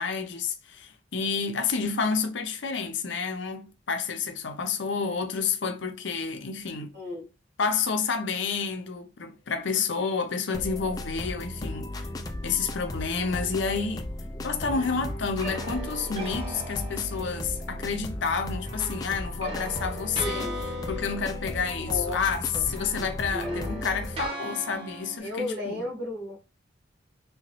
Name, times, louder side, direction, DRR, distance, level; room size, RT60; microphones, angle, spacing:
voice 1, 0.0-7.0 7.6-12.1 12.4-14.1 14.4-20.5 20.9-25.8, left 5 dB, 70° left, 0.6 m, -29 dB
voice 2, 6.9-7.3 20.2-20.6 21.8-22.2 22.5-22.7 23.0-23.8 25.2-26.4, left 2 dB, 55° right, 1.2 m, -34 dB
sound 1, 10.5-24.3, left 1 dB, 20° left, 0.3 m, -36 dB
sound 2, 14.7-17.7 18.7-22.3 22.6-25.2, equal, 30° right, 0.8 m, -39 dB
3.1 x 3.0 x 3.0 m
head